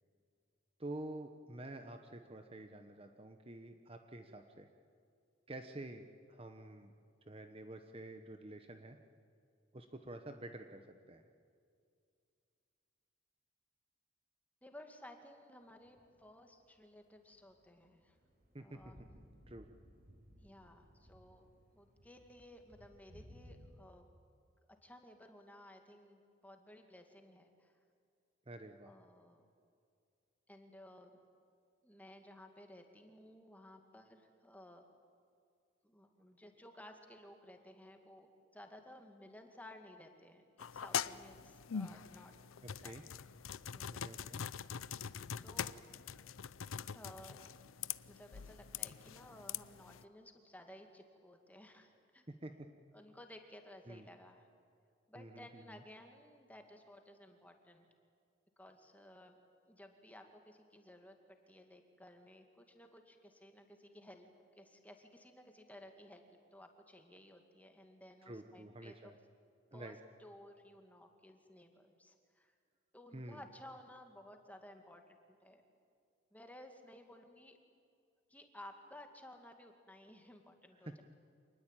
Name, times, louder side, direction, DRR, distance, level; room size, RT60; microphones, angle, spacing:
voice 1, 0.8-4.7 5.5-6.9 7.3-9.0 9.7-10.8 11.1-11.2 18.5-18.8 19.5-19.7 28.5-28.9 42.6-43.0 44.0-44.4 52.3-52.5 53.9-54.1 55.2-55.8 68.3-69.1 69.7-70.0 73.1-73.4 80.8-81.0, right 1 dB, 30° right, 6 dB, 1.0 m, -49 dB
voice 2, 14.6-18.2 18.6-19.1 20.4-21.5 21.7-24.1 24.8-27.8 28.9-29.5 30.5-31.2 31.8-34.8 35.8-42.3 42.8-43.0 43.7-44.5 45.3-45.8 46.9-47.5 48.1-52.3 52.9-54.5 55.1-57.9 58.6-59.3 59.7-64.3 64.6-66.2 66.5-69.1 69.7-69.9 70.2-72.5 72.9-75.6 76.3-77.6 78.3-81.0, left 1 dB, 10° left, 4 dB, 2.3 m, -57 dB
sound 1, 15.9-16.4 17.3-23.7, equal, 45° right, 4.6 m, -61 dB
sound 2, 40.6-50.0, left 8 dB, 90° left, 0.6 m, -43 dB
27.0 x 20.0 x 9.1 m, 2.3 s
head